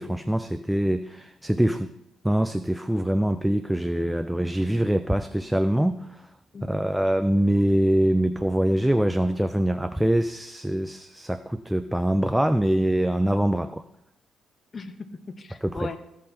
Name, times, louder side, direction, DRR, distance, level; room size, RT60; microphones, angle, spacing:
voice 1, 0.0-1.9 2.2-6.3 6.6-13.8 15.6-15.9, right 1 dB, 5° right, 10 dB, 0.4 m, -24 dB
voice 2, 6.5-6.9 14.7-16.0, left 3 dB, 35° left, 9 dB, 0.8 m, -38 dB
15.0 x 5.5 x 4.3 m, 0.85 s
cardioid pair, 90°, 0 cm